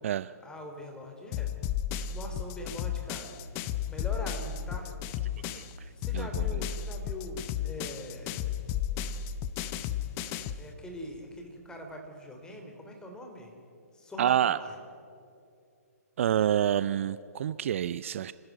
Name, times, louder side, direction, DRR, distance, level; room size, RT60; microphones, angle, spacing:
voice 1, 0.4-1.5 2.1-3.3 3.9-4.9 6.0-8.4 10.6-13.5 13.9-14.8, equal, 10° left, 3 dB, 3.2 m, -42 dB
sound 1, 1.3-5.7 6.0-10.7, left 9 dB, 25° left, 0.8 m, -33 dB
voice 2, 6.1-6.6 14.2-14.6 16.2-18.3, right 10 dB, 50° right, 16 dB, 0.5 m, -27 dB
28.5 x 13.0 x 9.2 m, 2.5 s
figure-of-eight pair, 130°, 9 cm